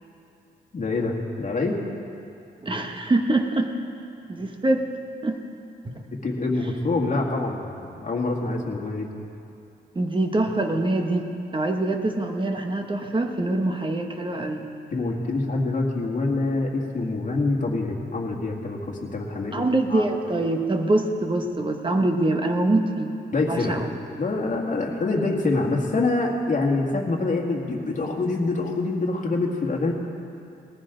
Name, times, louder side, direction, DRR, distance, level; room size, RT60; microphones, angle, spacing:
voice 1, 0.7-1.8 6.2-7.6 7.9-9.1 14.9-20.0 23.3-23.8 24.2-29.9, left 3 dB, 45° left, -1 dB, 2.0 m, -25 dB
voice 2, 2.6-3.7 4.3-4.9 5.2-5.4 5.8-6.0 9.9-14.7 19.5-23.2 23.5-23.9, right 2 dB, 30° right, 4 dB, 1.2 m, -24 dB
19.5 x 14.5 x 3.9 m, 2.6 s
wide cardioid pair, 125°, 18 cm